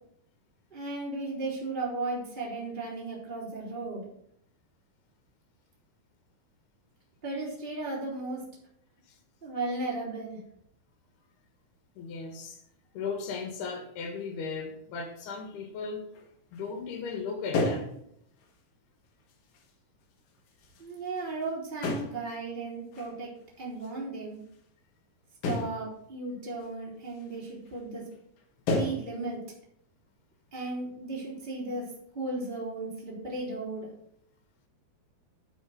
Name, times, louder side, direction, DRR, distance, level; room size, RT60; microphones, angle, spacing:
voice 1, 0.7-4.0 7.2-8.4 9.4-10.4 20.8-23.3 23.6-24.4 25.4-28.0 28.8-29.4 30.5-31.8 32.1-33.9, right 2 dB, 15° right, -4 dB, 3.3 m, -35 dB
voice 2, 12.0-12.6 12.9-16.1 16.5-17.9, left 5 dB, 85° left, 5 dB, 3.7 m, -36 dB
sound 1, 16.1-16.3 16.5-16.7 17.1-17.2 17.5-18.0 18.4-18.5 19.3-19.7 20.4-21.4 21.8-22.3 22.9-23.1 23.8-23.9 25.4-25.8 26.6-26.7 27.2-27.3 27.7-27.8 28.1-28.4 28.7-29.1, left 2 dB, 65° left, 3.1 m, -31 dB
10.0 x 6.1 x 6.6 m, 0.71 s
omnidirectional pair, 4.5 m